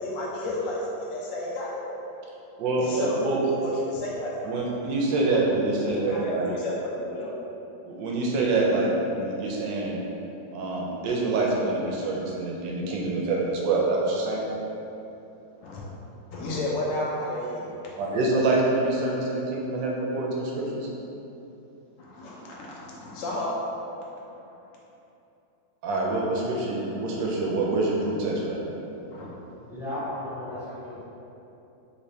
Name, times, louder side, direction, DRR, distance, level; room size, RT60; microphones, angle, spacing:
voice 1, 0.0-1.9 2.8-3.3 3.6-4.7 5.9-7.3 15.6-15.8 16.3-18.0 22.0-23.6 29.1-29.4 30.7-30.8, left 1 dB, 70° left, -4 dB, 1.3 m, -32 dB
voice 2, 2.6-3.4 4.4-6.5 7.8-10.0 10.5-14.4 18.0-20.9 25.8-28.6, right 2 dB, 75° right, -3 dB, 1.2 m, -26 dB
voice 3, 29.7-31.0, left 1 dB, ahead, -13 dB, 0.6 m, -34 dB
3.5 x 3.1 x 2.7 m, 2.9 s
omnidirectional pair, 2.1 m